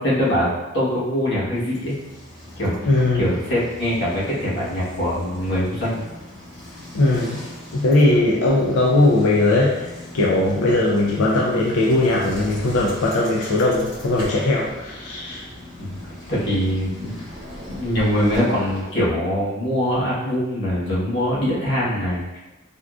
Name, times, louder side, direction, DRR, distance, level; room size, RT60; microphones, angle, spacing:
voice 1, 0.0-1.9 2.6-6.0 15.8-16.0 16.3-17.2 17.7-22.4, equal, 60° left, -8 dB, 1.1 m, -23 dB
Bicycle, 1.5-19.1, left 1 dB, 35° left, 1.4 m, -40 dB
voice 2, 2.8-3.3 6.9-7.4 7.7-15.4, left 2 dB, 90° left, -3 dB, 0.4 m, -19 dB
sound 1, 13.6-14.7 17.3-19.0, right 1 dB, 35° right, 0.6 m, -38 dB
3.6 x 2.4 x 2.3 m, 1.1 s
head